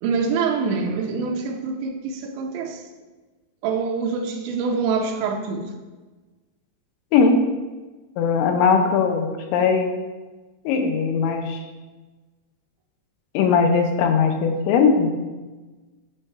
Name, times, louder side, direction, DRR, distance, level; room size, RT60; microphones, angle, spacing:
voice 1, 0.0-2.9 3.6-5.7, right 5 dB, 85° right, 1 dB, 3.0 m, -25 dB
voice 2, 8.2-10.0 10.7-11.6 13.3-15.1, left 5 dB, 90° left, 5 dB, 3.0 m, -19 dB
9.9 x 4.6 x 4.5 m, 1.2 s
omnidirectional pair, 5.3 m